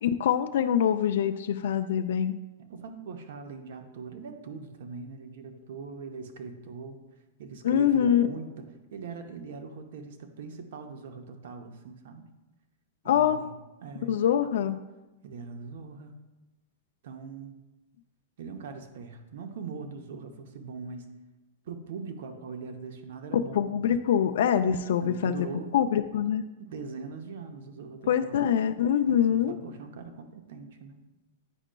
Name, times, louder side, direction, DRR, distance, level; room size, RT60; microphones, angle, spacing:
voice 1, 0.0-2.4 7.6-8.3 13.1-13.4 14.1-14.8 23.3-25.4 25.7-26.4 28.1-29.6, left 9 dB, 75° left, 8 dB, 0.3 m, -24 dB
voice 2, 2.6-7.0 7.4-12.3 13.0-13.5 13.8-14.2 15.2-16.1 17.0-17.5 18.4-21.1 21.6-23.7 25.0-25.8 26.6-28.5 29.1-31.0, right 5 dB, 70° right, 6 dB, 0.7 m, -41 dB
9.8 x 5.0 x 2.2 m, 1.1 s
supercardioid pair, 150°, 0 cm